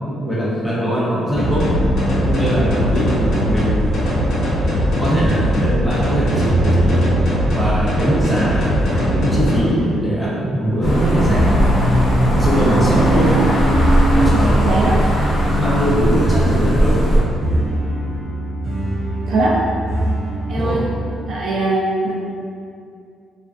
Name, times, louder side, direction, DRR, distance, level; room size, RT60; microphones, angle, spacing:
voice 1, 0.0-1.7 2.3-3.7 5.0-7.1 7.5-11.4 12.3-13.4 14.1-15.1 15.6-17.3 20.6-20.8, equal, 5° left, -8 dB, 0.8 m, -21 dB
sound 1, 1.3-21.1, right 1 dB, 40° right, 0.9 m, -24 dB
sound 2, 1.4-9.6, equal, 65° left, 0.6 m, -20 dB
sound 3, 10.8-17.2, right 1 dB, 35° left, 1.0 m, -17 dB
voice 2, 20.5-20.8 21.3-22.1, right 2 dB, 60° right, -4 dB, 0.4 m, -20 dB
2.4 x 2.2 x 2.4 m, 2.4 s
cardioid pair, 90°, 0 cm